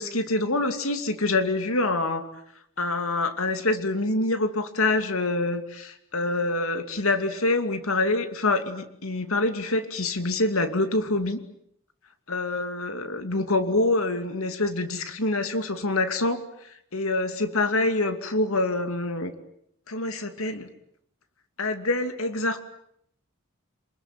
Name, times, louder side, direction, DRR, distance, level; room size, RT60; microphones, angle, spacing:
voice 1, 0.0-2.3 2.8-11.4 12.3-16.4 16.6-19.3 19.9-20.7 21.6-22.6, left 2 dB, 70° left, 9 dB, 2.6 m, -26 dB
28.0 x 21.0 x 9.2 m, 0.73 s
head